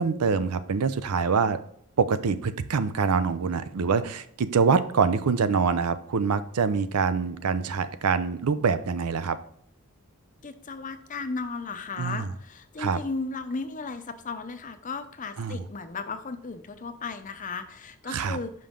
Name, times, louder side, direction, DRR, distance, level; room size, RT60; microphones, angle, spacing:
voice 1, 0.0-1.6 2.0-9.4 12.0-12.3 12.8-13.0 15.4-15.7 18.1-18.4, right 5 dB, 85° right, 13 dB, 0.5 m, -25 dB
voice 2, 10.4-18.5, left 4 dB, 35° left, 9 dB, 0.6 m, -35 dB
5.7 x 5.3 x 3.7 m, 0.69 s
head